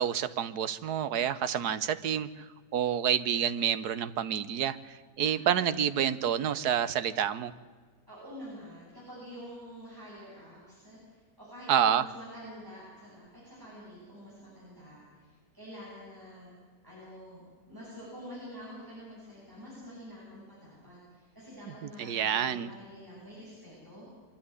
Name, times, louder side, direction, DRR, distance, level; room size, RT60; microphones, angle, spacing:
voice 1, 0.0-2.5 2.7-7.5 11.7-12.1 22.0-22.7, right 9 dB, 70° right, 13 dB, 1.4 m, -28 dB
voice 2, 5.3-5.6 8.1-16.5 16.8-24.1, equal, 10° right, -8 dB, 8.0 m, -47 dB
24.5 x 13.0 x 9.7 m, 1.5 s
omnidirectional pair, 1.8 m